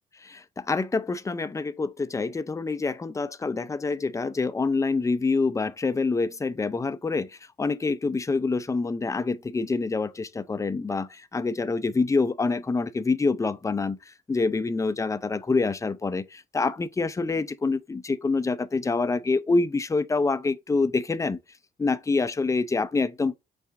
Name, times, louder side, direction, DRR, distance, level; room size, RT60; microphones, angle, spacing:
voice 1, 0.2-21.4 21.8-23.4, left 3 dB, 15° left, 0.4 m, -26 dB
5.6 x 2.5 x 3.6 m
cardioid pair, 90°, 20 cm